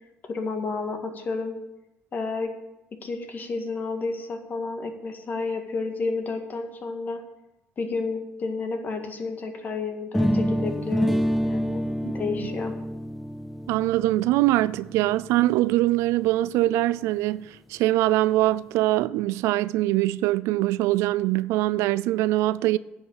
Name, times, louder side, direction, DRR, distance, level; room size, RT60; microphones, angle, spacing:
voice 1, 0.2-1.6 2.1-2.5 3.0-7.2 7.8-11.8 12.1-12.8, left 4 dB, 40° left, 1.9 m, -31 dB
sound 1, 10.1-16.1, equal, ahead, 0.5 m, -27 dB
voice 2, 13.7-22.8, right 16 dB, 85° right, 0.3 m, -23 dB
10.0 x 6.4 x 8.6 m
cardioid pair, 95°, 5 cm